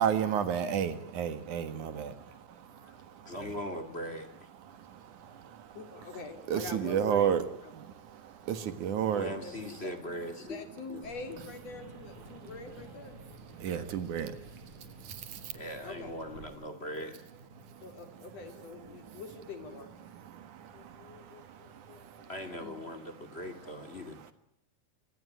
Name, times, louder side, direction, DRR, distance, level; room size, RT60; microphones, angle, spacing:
voice 1, 0.0-3.6 4.5-5.8 6.5-7.5 7.7-9.4 12.2-12.9 13.5-15.7 17.5-17.8 18.9-19.2 20.0-22.3 23.2-24.3, right 8 dB, 75° right, 3.1 m, -34 dB
voice 2, 3.3-4.5 9.1-10.6 10.9-11.0 15.5-17.2 22.3-24.2, left 1 dB, 20° left, 2.2 m, -40 dB
voice 3, 5.7-7.3 7.6-7.7 9.4-13.2 13.7-13.9 15.8-16.2 17.8-19.9 20.7-23.0 23.6-23.8, left 4 dB, 55° left, 3.9 m, -45 dB
sound 1, 11.0-16.5, right 1 dB, 40° right, 7.0 m, -53 dB
26.0 x 19.0 x 9.6 m
omnidirectional pair, 3.5 m